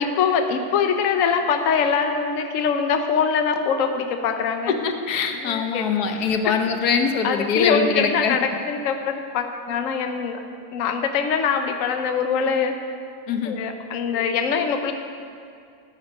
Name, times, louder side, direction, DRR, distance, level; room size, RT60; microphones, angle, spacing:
voice 1, 0.0-4.7 5.3-6.2 7.2-10.4 10.7-12.7 13.4-14.9, left 6 dB, 60° left, 6 dB, 1.1 m, -23 dB
voice 2, 4.8-8.4 13.3-13.5, left 5 dB, 80° left, 6 dB, 1.3 m, -23 dB
15.0 x 9.6 x 5.2 m, 2.3 s
omnidirectional pair, 1.7 m